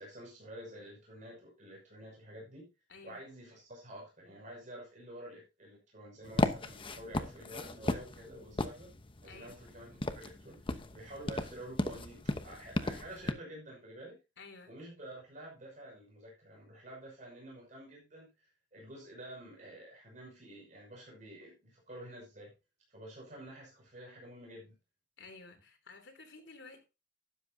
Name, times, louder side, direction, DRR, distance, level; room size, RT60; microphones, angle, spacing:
voice 1, 0.0-2.7 3.0-8.9 9.2-14.2 14.7-22.5 22.9-24.8, right 1 dB, 45° right, 6.0 m, -49 dB
voice 2, 2.9-3.2 9.2-9.7 14.4-14.7 25.2-26.8, left 3 dB, 80° left, 3.2 m, -53 dB
sound 1, 6.2-13.3, left 2 dB, 30° left, 1.0 m, -36 dB
12.5 x 11.0 x 2.8 m
head